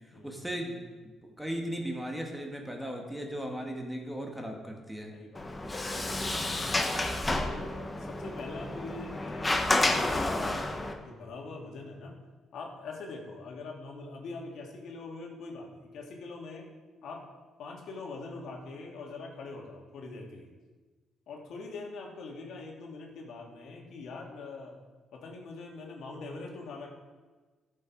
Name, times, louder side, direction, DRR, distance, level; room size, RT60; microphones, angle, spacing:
voice 1, 0.2-5.1, equal, 5° right, 2 dB, 1.6 m, -37 dB
voice 2, 5.1-5.5 5.8-6.7 7.4-12.2 12.5-16.7 17.0-17.3 17.6-20.5 21.3-24.8 25.1-26.9, left 3 dB, 70° left, 0 dB, 2.0 m, -43 dB
Sliding door, 5.3-10.9, left 2 dB, 20° left, 1.2 m, -30 dB
13.0 x 6.6 x 4.7 m, 1.3 s
cardioid pair, 90°, 0 cm